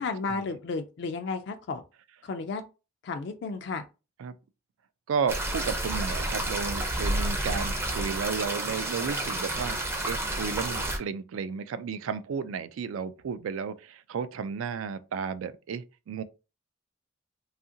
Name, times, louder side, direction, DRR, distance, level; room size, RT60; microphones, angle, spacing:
voice 1, 0.0-1.8 2.2-2.6 3.0-3.8, left 4 dB, 55° left, 0.3 m, -33 dB
voice 2, 5.1-16.2, right 6 dB, 85° right, 0.3 m, -33 dB
sound 1, 5.3-11.0, right 1 dB, 10° right, 0.4 m, -30 dB
2.8 x 2.4 x 2.6 m
head